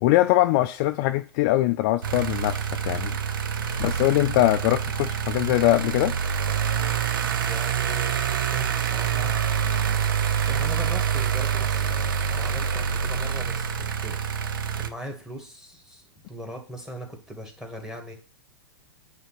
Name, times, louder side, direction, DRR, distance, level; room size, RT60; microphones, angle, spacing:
voice 1, 0.0-3.2 3.8-6.1, left 16 dB, 45° left, 0.4 m, -22 dB
sound 1, 2.0-14.9, right 8 dB, 65° right, 0.8 m, -26 dB
voice 2, 7.1-10.0 10.5-14.2 14.4-18.1, equal, 5° right, 2.0 m, -40 dB
9.3 x 3.7 x 5.8 m
figure-of-eight pair, 105°, 12 cm